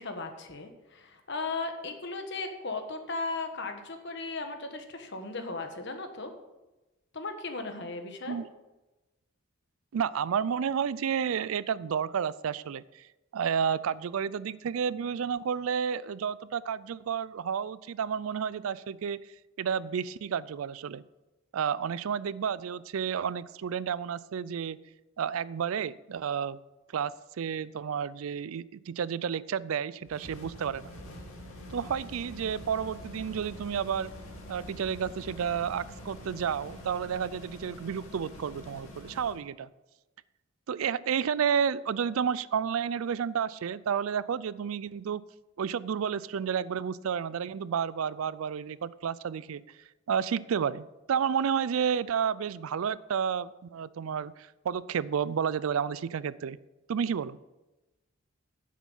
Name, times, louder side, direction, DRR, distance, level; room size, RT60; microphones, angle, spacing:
voice 1, 0.0-6.3 7.1-8.4, left 3 dB, 55° left, 6 dB, 1.3 m, -36 dB
voice 2, 9.9-13.0 13.3-19.2 19.6-21.0 21.5-24.8 25.2-26.6 26.9-30.9 31.7-34.1 34.5-39.7 40.7-45.2 45.6-49.6 50.1-56.6 56.9-57.4, right 7 dB, 85° right, 19 dB, 0.4 m, -31 dB
sound 1, 30.1-39.4, left 1 dB, 90° left, 2.3 m, -45 dB
9.8 x 7.5 x 5.5 m, 1.0 s
head